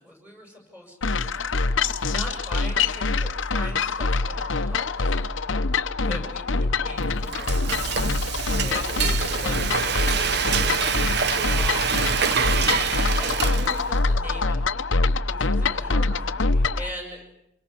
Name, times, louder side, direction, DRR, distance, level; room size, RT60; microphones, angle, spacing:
voice 1, 0.0-1.7 2.1-5.2 6.0-8.0 8.6-10.9 11.5-12.0 12.8-14.6 15.3-17.2, equal, 10° right, 2 dB, 7.9 m, -40 dB
sound 1, 1.0-16.9, left 3 dB, 90° left, 0.9 m, -25 dB
Frying (food), 7.0-14.1, right 6 dB, 60° right, 1.0 m, -26 dB
27.5 x 24.0 x 7.6 m, 0.87 s
head